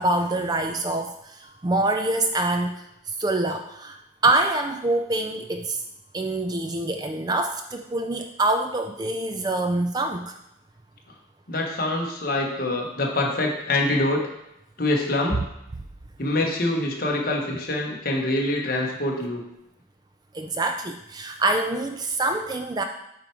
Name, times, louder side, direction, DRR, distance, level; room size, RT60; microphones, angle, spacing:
voice 1, 0.0-2.7 3.2-4.0 4.2-5.8 6.1-10.4 15.7-15.8 20.3-22.8, right 2 dB, 20° right, 5 dB, 0.4 m, -25 dB
voice 2, 11.5-14.2 14.8-15.4 16.2-19.4, left 2 dB, 50° left, 0 dB, 1.3 m, -25 dB
7.7 x 4.5 x 4.7 m, 0.85 s
head